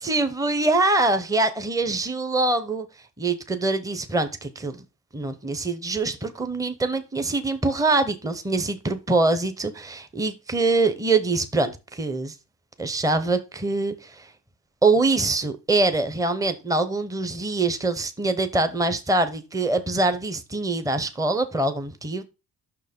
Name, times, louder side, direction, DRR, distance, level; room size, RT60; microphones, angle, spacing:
voice 1, 0.0-2.9 3.2-4.8 5.1-12.3 12.8-14.3 14.8-22.2, right 2 dB, 10° right, 0.8 m, -24 dB
5.9 x 4.5 x 5.2 m
cardioid pair, 95°, 38 cm